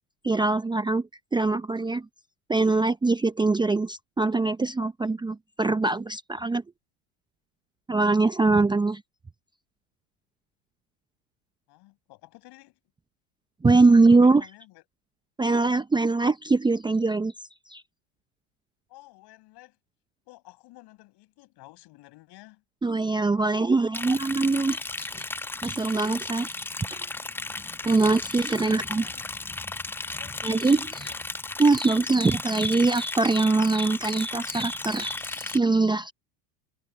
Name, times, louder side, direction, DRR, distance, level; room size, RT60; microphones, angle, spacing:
voice 1, 0.2-1.0 1.3-2.1 2.5-6.6 7.9-9.0 13.6-14.4 15.4-17.3 17.7-17.8 22.8-25.2 25.6-26.5 26.9-27.0 27.8-29.0 30.4-31.1 31.6-36.1, right 3 dB, 10° right, 0.7 m, -23 dB
voice 2, 11.7-12.8 13.7-14.8 18.9-19.8 20.2-22.6 23.4-24.1 28.2-29.3 30.1-31.2, left 20 dB, 60° left, 6.4 m, -52 dB
Liquid, 23.9-35.6, left 3 dB, 5° left, 0.3 m, -35 dB
hypercardioid pair, 95°, 46 cm